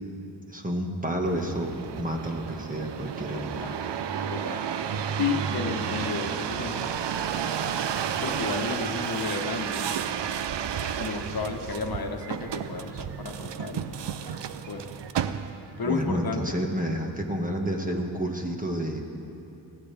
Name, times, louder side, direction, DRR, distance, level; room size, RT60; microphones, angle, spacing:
voice 1, 0.5-3.7 15.8-19.0, right 1 dB, 20° right, 1 dB, 1.7 m, -30 dB
sound 1, 1.2-15.8 16.4-16.9, right 8 dB, 75° right, 0.7 m, -32 dB
voice 2, 3.3-3.9 4.3-4.7 5.2-7.1 8.2-10.2 11.0-14.9 15.8-16.5, left 4 dB, 55° left, 3 dB, 1.3 m, -33 dB
22.0 x 15.0 x 3.5 m, 2.9 s
wide cardioid pair, 75°, 43 cm